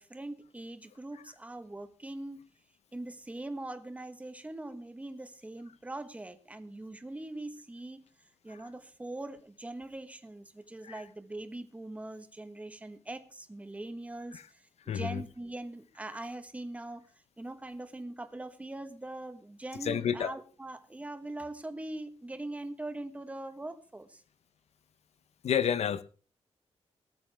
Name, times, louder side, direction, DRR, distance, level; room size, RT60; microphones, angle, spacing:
voice 1, 0.0-2.4 2.9-8.0 8.4-14.6 14.9-17.0 17.4-24.2, right 2 dB, 10° right, 9 dB, 1.3 m, -42 dB
voice 2, 14.9-15.2 19.8-20.3 25.4-26.0, left 8 dB, 75° left, 14 dB, 1.0 m, -30 dB
18.0 x 13.0 x 3.5 m, 0.37 s
wide cardioid pair, 165°, 11 cm